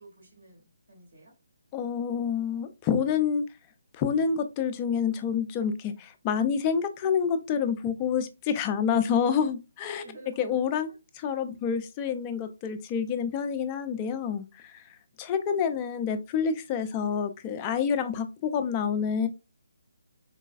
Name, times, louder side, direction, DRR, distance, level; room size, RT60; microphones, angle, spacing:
voice 1, 0.0-1.3 9.4-9.5 10.0-11.0, right 2 dB, 70° right, -1 dB, 1.8 m, -51 dB
voice 2, 1.7-3.4 3.9-10.0 10.4-10.9 11.1-14.8 15.2-19.3, left 7 dB, 25° left, 8 dB, 0.4 m, -28 dB
4.0 x 2.3 x 2.3 m, 0.29 s
figure-of-eight pair, 145°, 0 cm